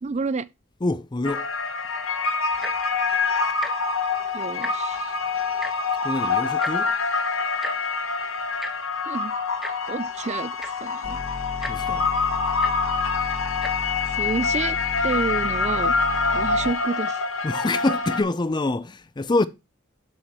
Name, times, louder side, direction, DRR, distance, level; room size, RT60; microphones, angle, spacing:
voice 1, 0.0-0.5 4.3-5.1 9.1-9.3 9.9-11.2 14.1-14.8 15.0-15.9 16.3-17.2, right 4 dB, 35° right, 0.4 m, -29 dB
voice 2, 0.8-1.5 6.0-6.9 11.7-12.1 17.4-19.5, left 2 dB, 20° left, 0.5 m, -25 dB
sound 1, 1.2-18.2, left 4 dB, 85° left, 1.5 m, -26 dB
Tick-tock, 2.5-2.9 3.5-3.7 4.0-4.2 4.5-5.0 5.6-5.7 6.6-6.7 7.6-7.7 8.6-8.7 9.6-9.7 10.3-10.4 10.6-10.9 11.6-11.7 12.6-12.7 13.5-13.7 14.4-14.5, equal, ahead, 1.2 m, -33 dB
sound 2, 11.0-16.7, left 2 dB, 40° left, 1.4 m, -35 dB
12.0 x 4.8 x 4.2 m
head